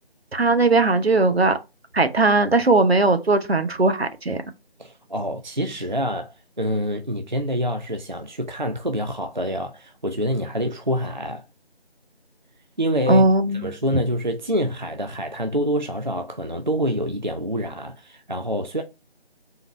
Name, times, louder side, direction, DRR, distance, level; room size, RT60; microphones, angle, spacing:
voice 1, 0.3-1.6 1.9-4.4 13.1-13.7, right 3 dB, 70° right, 0.9 m, -18 dB
voice 2, 4.8-11.4 12.8-13.2 13.6-18.8, equal, 45° right, 0.4 m, -26 dB
3.9 x 3.0 x 4.3 m
figure-of-eight pair, 175°, 32 cm